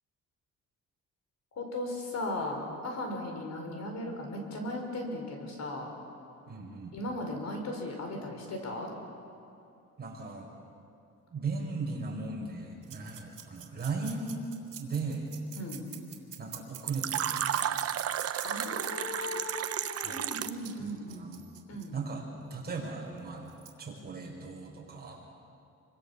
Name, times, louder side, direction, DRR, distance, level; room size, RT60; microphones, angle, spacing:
voice 1, 1.5-5.9 6.9-8.9 15.6-15.9 18.4-21.3 21.7-21.9, left 1 dB, 55° left, 2 dB, 5.0 m, -37 dB
voice 2, 6.5-6.9 10.0-10.5 11.3-14.4 14.8-15.3 16.4-17.8 20.0-20.3 20.8-21.4 21.9-23.5 23.8-25.2, right 4 dB, 30° right, -1 dB, 5.6 m, -37 dB
sound 1, 12.8-18.9 20.4-21.9 23.2-23.3 23.5-23.7, right 10 dB, 75° right, 3.4 m, -46 dB
Fill (with liquid), 16.9-20.7, right 10 dB, 50° right, 0.8 m, -32 dB
28.0 x 25.0 x 7.2 m, 2.7 s
wide cardioid pair, 165°, 31 cm